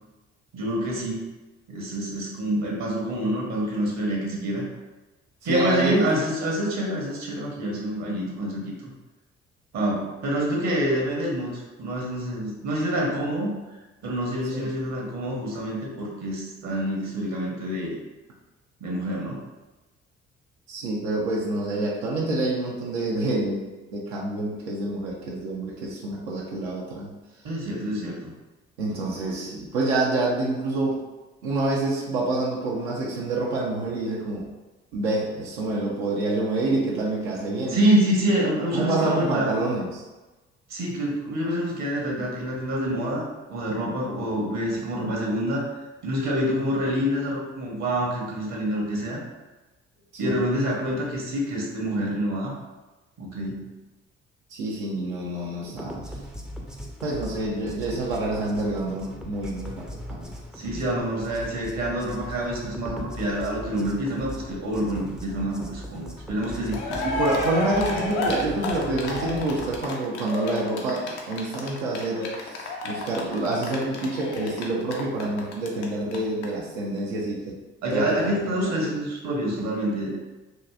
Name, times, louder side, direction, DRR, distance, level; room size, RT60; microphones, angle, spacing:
voice 1, 0.5-1.3 1.7-4.7 5.4-8.9 9.7-13.5 14.0-18.0 18.8-19.4 27.4-28.3 37.7-39.5 40.7-45.6 46.0-49.2 50.2-52.5 53.2-53.6 60.5-67.1 77.8-80.2, right 1 dB, 55° right, -2 dB, 1.0 m, -27 dB
voice 2, 5.5-6.1 14.5-14.7 20.7-27.1 28.8-31.0 31.4-34.5 34.9-37.8 38.7-40.0 50.2-50.3 54.5-56.0 57.0-60.3 66.9-77.6 77.9-78.9, right 2 dB, 80° right, -3 dB, 0.6 m, -27 dB
sound 1, 55.7-69.8, equal, ahead, 0.4 m, -39 dB
Cheering, 66.4-66.5 66.7-75.8 76.1-76.2 76.4-76.5, left 2 dB, 85° left, 0.5 m, -31 dB
2.8 x 2.5 x 2.3 m, 1.1 s
hypercardioid pair, 45°, 34 cm